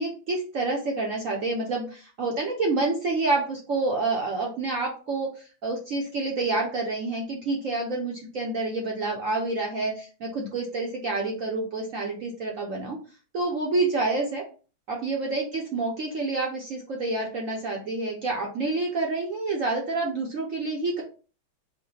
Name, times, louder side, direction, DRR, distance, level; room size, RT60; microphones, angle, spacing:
voice 1, 0.0-13.0 13.3-14.4 14.9-21.0, right 3 dB, 60° right, -1 dB, 0.9 m, -28 dB
4.7 x 2.2 x 4.1 m, 0.36 s
omnidirectional pair, 2.2 m